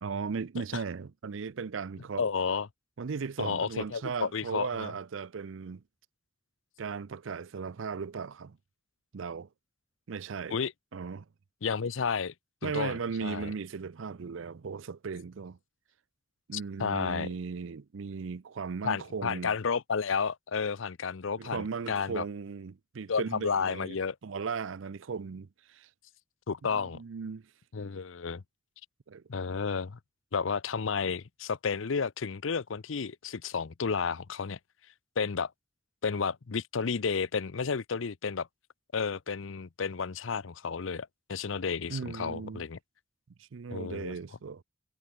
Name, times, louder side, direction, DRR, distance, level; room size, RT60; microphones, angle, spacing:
voice 1, 0.0-2.3 3.0-5.8 6.8-8.6 9.1-9.5 10.1-10.6 10.9-11.3 12.6-15.6 16.5-19.5 21.4-24.0 24.2-25.9 26.7-27.4 29.1-29.2 41.9-42.6 43.4-44.6, right 5 dB, 80° right, 0.5 m, -37 dB
voice 2, 2.2-2.7 3.4-4.9 10.5-10.7 11.6-12.3 12.6-13.5 16.5-17.3 18.8-22.2 23.1-24.1 26.5-27.0 27.7-28.4 29.3-30.0 30.3-34.6 35.2-35.5 36.0-38.5 38.9-42.8 43.7-44.1, left 5 dB, 80° left, 0.6 m, -32 dB
head